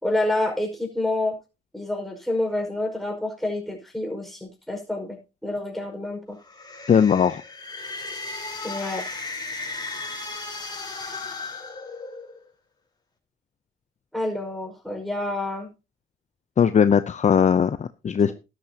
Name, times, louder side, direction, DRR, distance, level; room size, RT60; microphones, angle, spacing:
voice 1, 0.0-1.4 1.7-6.4 8.6-9.1 14.1-15.7 18.1-18.3, left 1 dB, ahead, 1 dB, 5.1 m, -28 dB
sound 1, 6.4-12.4, left 3 dB, 20° left, 4.2 m, -35 dB
voice 2, 6.9-7.4 16.6-18.3, left 7 dB, 35° left, 11 dB, 0.7 m, -19 dB
12.0 x 12.0 x 2.9 m, 0.29 s
cardioid pair, 90°, 20 cm